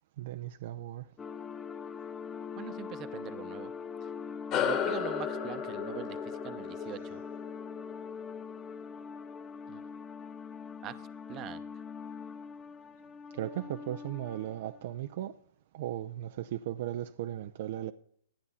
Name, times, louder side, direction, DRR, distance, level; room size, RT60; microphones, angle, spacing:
voice 1, 0.2-1.1 13.3-15.4 15.7-17.9, right 12 dB, 50° right, 0.5 m, -37 dB
sound 1, 1.2-14.8, left 6 dB, 15° left, 0.5 m, -43 dB
voice 2, 2.6-3.7 4.0-4.1 4.7-7.2 9.7-9.9 10.8-10.9 11.3-11.6, right 12 dB, 30° right, 0.8 m, -43 dB
sound 2, 4.5-9.3, left 7 dB, 30° left, 1.9 m, -35 dB
13.0 x 9.4 x 5.5 m
figure-of-eight pair, 115°, 0 cm